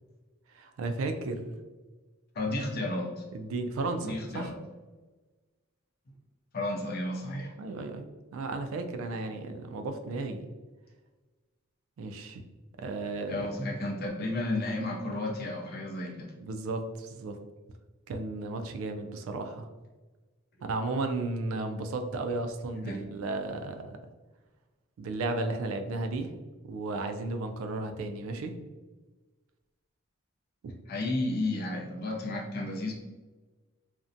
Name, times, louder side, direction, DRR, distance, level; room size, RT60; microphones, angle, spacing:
voice 1, 0.5-1.6 3.3-4.5 7.6-8.0 8.3-10.4 12.0-12.4 12.8-13.5 16.4-17.4 18.1-19.7 20.6-24.0 25.0-26.3 26.6-28.6 30.6-30.7, right 3 dB, 70° right, 7 dB, 0.3 m, -34 dB
voice 2, 2.3-3.2 4.0-4.6 6.5-7.5 13.3-16.3 22.8-23.0 30.9-32.9, left 2 dB, 45° left, 0 dB, 0.5 m, -32 dB
2.5 x 2.1 x 2.6 m, 1.3 s
head